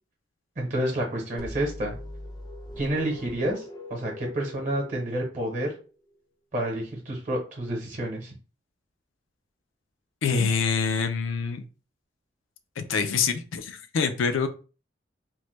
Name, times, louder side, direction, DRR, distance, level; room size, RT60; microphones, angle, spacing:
voice 1, 0.6-1.9 2.8-3.6 3.9-5.7 6.5-8.3 10.3-10.5, right 1 dB, 40° right, 1 dB, 0.8 m, -29 dB
sound 1, 1.4-6.1, left 1 dB, 25° left, 0.4 m, -41 dB
voice 2, 10.2-11.6 12.8-14.5, left 5 dB, 90° left, 9 dB, 0.4 m, -26 dB
3.1 x 2.1 x 3.1 m, 0.35 s
head